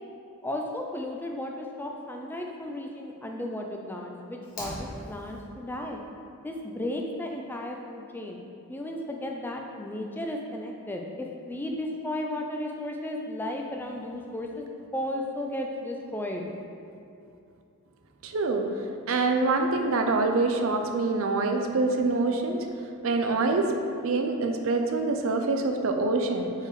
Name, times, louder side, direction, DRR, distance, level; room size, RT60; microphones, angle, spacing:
voice 1, 0.4-6.0 6.4-8.4 8.7-14.7 14.9-16.4, left 1 dB, 10° left, 1 dB, 0.4 m, -34 dB
Fire, 4.4-5.4, left 1 dB, 40° left, 1.4 m, -40 dB
voice 2, 18.2-18.7 19.1-22.7 23.0-23.7 24.0-26.5, right 3 dB, 65° right, 4 dB, 0.5 m, -25 dB
4.8 x 4.6 x 4.8 m, 2.6 s
head